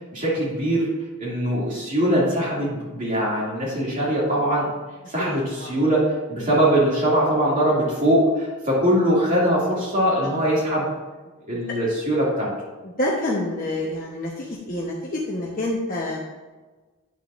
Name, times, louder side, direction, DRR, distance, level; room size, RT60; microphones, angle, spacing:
voice 1, 0.1-0.9 1.2-4.7 5.1-6.0 6.3-10.9 11.5-12.5, equal, 35° right, -7 dB, 2.5 m, -21 dB
voice 2, 5.2-5.7 12.8-16.2, left 1 dB, 40° left, -4 dB, 1.0 m, -27 dB
10.0 x 7.4 x 2.6 m, 1.3 s
head